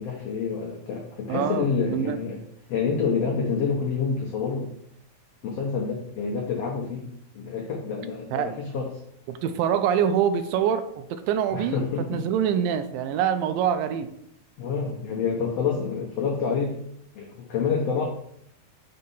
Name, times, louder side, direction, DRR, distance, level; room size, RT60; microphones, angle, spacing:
voice 1, 0.0-2.4 2.7-4.7 5.4-8.9 11.5-12.3 14.6-16.8 17.1-18.0, left 5 dB, 85° left, -1 dB, 1.4 m, -28 dB
voice 2, 1.3-2.2 8.3-8.6 9.3-11.8 12.1-14.1, right 8 dB, 80° right, 10 dB, 2.2 m, -25 dB
6.6 x 4.1 x 5.4 m, 0.74 s
omnidirectional pair, 4.2 m